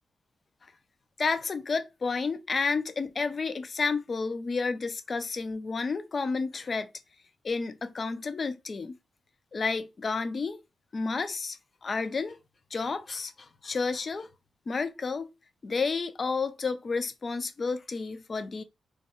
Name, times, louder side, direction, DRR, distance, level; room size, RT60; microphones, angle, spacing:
voice 1, 1.2-6.9 7.4-9.0 9.5-10.6 10.9-11.6 11.8-12.4 12.7-14.3 14.7-15.3 15.6-18.6, left 4 dB, 50° left, 0.5 m, -31 dB
3.2 x 2.3 x 2.8 m
supercardioid pair, 45°, 0 cm